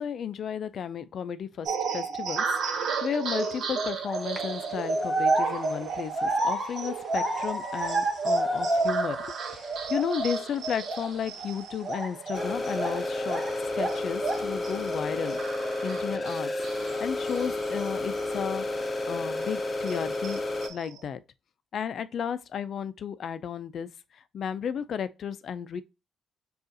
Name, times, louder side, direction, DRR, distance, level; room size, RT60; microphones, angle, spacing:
voice 1, 0.0-15.4 15.8-16.5 16.8-20.4 20.7-21.2 21.7-25.8, left 7 dB, 60° left, 0.4 m, -34 dB
sound 1, 1.6-18.5 18.9-19.0 19.4-21.0, right 4 dB, 65° right, 0.8 m, -35 dB
sound 2, 4.0-4.4 5.0-9.3 9.6-10.4 10.8-11.1 11.8-13.5 13.7-14.5, right 2 dB, 20° right, 1.1 m, -29 dB
sound 3, 12.3-20.7, left 2 dB, 25° left, 0.7 m, -31 dB
6.4 x 2.4 x 2.6 m
cardioid pair, 90°, 0 cm